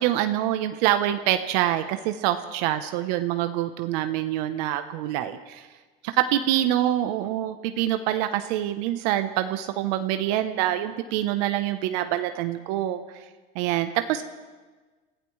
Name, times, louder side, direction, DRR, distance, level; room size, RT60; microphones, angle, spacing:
voice 1, 0.0-5.7 6.0-13.0 13.5-14.2, right 12 dB, 85° right, 9 dB, 0.9 m, -25 dB
28.5 x 16.0 x 3.2 m, 1.3 s
supercardioid pair, 115°, 21 cm